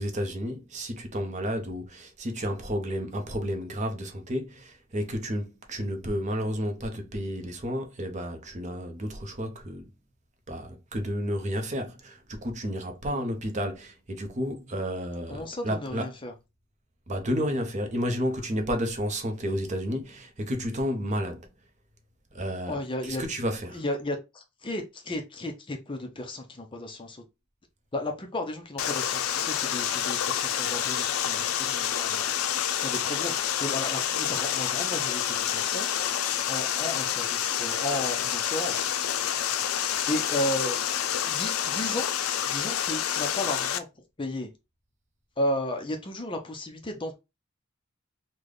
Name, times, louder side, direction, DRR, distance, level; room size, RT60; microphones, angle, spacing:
voice 1, 0.0-9.9 10.5-16.1 17.1-21.5 22.3-22.8 23.0-23.8, equal, 35° right, 0.7 m, -31 dB
voice 2, 15.3-16.3 22.7-23.2 23.7-27.2 27.9-32.3 32.8-35.9 36.5-38.9 39.9-40.8 41.2-42.1 42.4-43.9 44.2-44.5 45.4-47.2, left 1 dB, 25° left, 0.5 m, -34 dB
Water, 28.8-43.8, left 10 dB, 85° left, 0.4 m, -28 dB
3.3 x 2.2 x 3.7 m
head